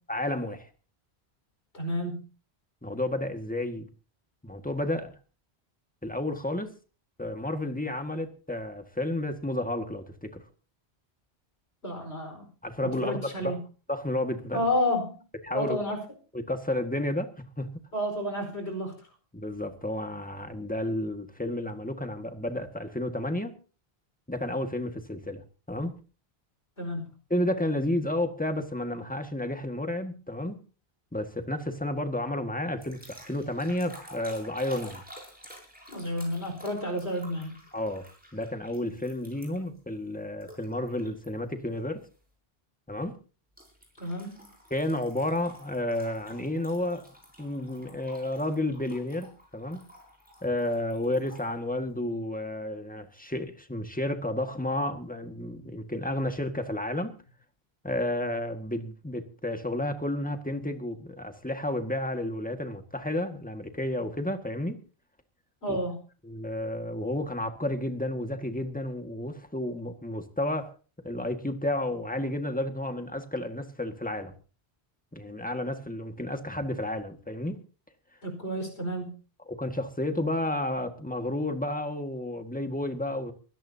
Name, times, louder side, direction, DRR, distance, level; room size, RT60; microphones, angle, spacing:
voice 1, 0.1-0.7 2.8-3.9 4.4-5.1 6.0-6.7 7.2-10.4 12.6-13.6 13.9-14.7 15.4-15.8 16.3-17.7 19.3-23.6 24.3-25.9 27.3-30.6 31.1-35.0 37.7-38.1 38.3-42.1 42.9-43.2 44.7-47.0 47.4-49.8 50.4-57.2 57.8-64.8 65.7-65.8 66.2-70.7 71.0-74.3 75.1-77.6 79.5-83.3, left 1 dB, 10° left, 1.8 m, -31 dB
voice 2, 1.7-2.2 11.8-12.5 12.8-13.6 14.5-15.2 15.5-16.0 17.9-18.9 26.8-27.1 35.9-37.5 44.0-44.5 65.6-66.0 78.2-79.1, left 1 dB, 85° left, 5.1 m, -31 dB
sound 1, 32.8-39.8 40.4-41.3 41.7-42.0 43.6-51.5, equal, 10° right, 7.4 m, -50 dB
23.0 x 16.5 x 2.8 m
omnidirectional pair, 1.1 m